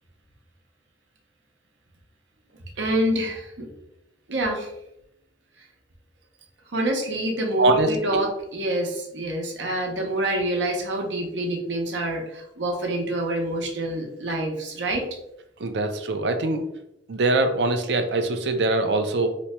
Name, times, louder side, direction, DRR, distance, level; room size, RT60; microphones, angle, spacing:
voice 1, 2.8-3.7 4.3-4.7 6.7-15.0, right 1 dB, 90° right, 1 dB, 0.8 m, -26 dB
voice 2, 7.6-8.2 15.6-16.7 17.1-19.4, right 2 dB, 65° right, 7 dB, 0.5 m, -23 dB
2.9 x 2.2 x 4.2 m, 0.81 s
head